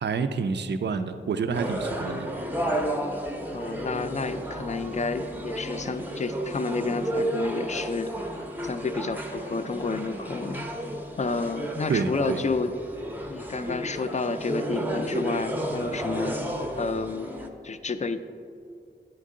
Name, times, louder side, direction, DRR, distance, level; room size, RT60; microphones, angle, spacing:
voice 1, 0.0-2.3 11.9-12.4, right 5 dB, 60° right, 10 dB, 0.4 m, -28 dB
sound 1, 1.5-17.5, right 1 dB, 10° right, 0.6 m, -32 dB
voice 2, 3.5-8.1 8.6-10.7 11.2-12.7 13.3-16.4 16.8-17.4 17.6-18.2, left 4 dB, 35° left, 10 dB, 0.4 m, -30 dB
sound 2, 7.5-8.1 8.8-9.1 10.0-11.9, right 2 dB, 80° right, 0.7 m, -49 dB
9.9 x 4.5 x 3.7 m, 2.4 s
wide cardioid pair, 90°, 20 cm